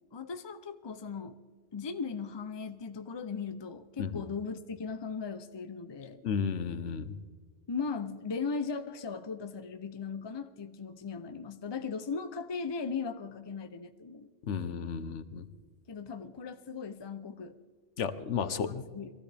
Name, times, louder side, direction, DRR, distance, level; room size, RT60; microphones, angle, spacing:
voice 1, 0.1-1.4 1.7-6.2 7.7-14.3 15.9-17.6 18.4-19.1, left 5 dB, 40° left, 9 dB, 0.4 m, -38 dB
voice 2, 6.2-7.2 14.5-15.5 18.0-18.8, left 6 dB, 70° left, 12 dB, 1.2 m, -33 dB
23.0 x 15.5 x 3.4 m, 1.5 s
omnidirectional pair, 1.3 m